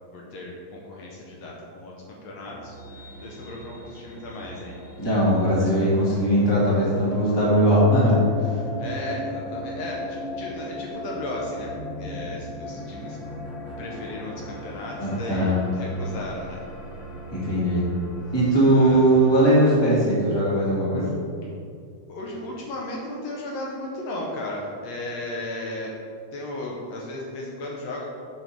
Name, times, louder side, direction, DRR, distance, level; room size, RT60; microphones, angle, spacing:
voice 1, 0.1-2.8 3.2-4.8 8.8-11.7 12.0-13.2 13.8-16.6 18.7-19.1 22.1-25.9 26.3-28.1, left 1 dB, 70° left, -2 dB, 1.9 m, -35 dB
sound 1, 2.4-19.7, left 1 dB, 35° left, 2.3 m, -37 dB
voice 2, 5.0-8.2 15.0-15.6 17.3-17.8 18.3-21.0, right 1 dB, 10° left, -7 dB, 1.4 m, -20 dB
6.8 x 6.2 x 4.5 m, 2.4 s
omnidirectional pair, 3.4 m